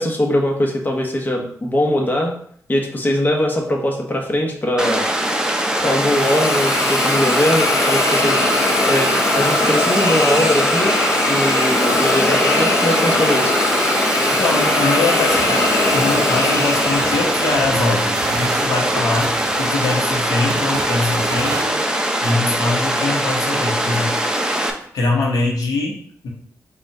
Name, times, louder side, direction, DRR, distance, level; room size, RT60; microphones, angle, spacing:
voice 1, 0.0-2.3 2.7-5.1 5.8-8.4 8.9-11.0 11.3-13.6, left 1 dB, 30° left, 1 dB, 1.0 m, -21 dB
Water, 4.8-24.7, right 1 dB, 10° right, 0.7 m, -21 dB
Hiss, 5.6-17.7, left 2 dB, 60° left, 1.1 m, -21 dB
voice 2, 14.3-15.6 15.9-21.7 22.2-24.1 24.9-26.3, left 3 dB, 80° left, -2 dB, 1.0 m, -22 dB
sound 1, 15.2-21.7, right 6 dB, 85° right, 0.4 m, -31 dB
4.2 x 2.4 x 4.8 m, 0.62 s
cardioid pair, 55°, 6 cm